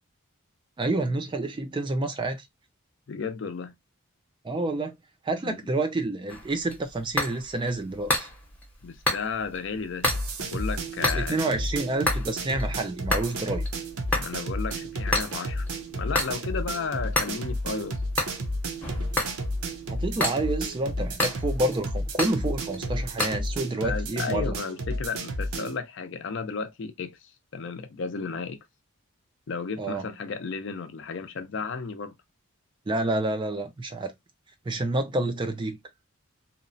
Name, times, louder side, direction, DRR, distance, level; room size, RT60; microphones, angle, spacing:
voice 1, 0.8-2.5 4.4-4.9 5.2-8.3 11.1-13.6 19.9-24.6 29.8-30.1 32.9-34.1 34.7-35.8, right 2 dB, 20° right, 0.3 m, -28 dB
voice 2, 3.1-3.7 5.4-5.6 8.8-10.1 10.4-11.5 14.1-15.7 15.9-18.0 23.7-28.6 29.5-32.1, left 5 dB, 55° left, 0.4 m, -33 dB
sound 1, 6.3-23.4, left 2 dB, 5° left, 0.7 m, -32 dB
sound 2, 10.0-25.8, equal, 80° right, 0.6 m, -32 dB
2.8 x 2.0 x 2.6 m
head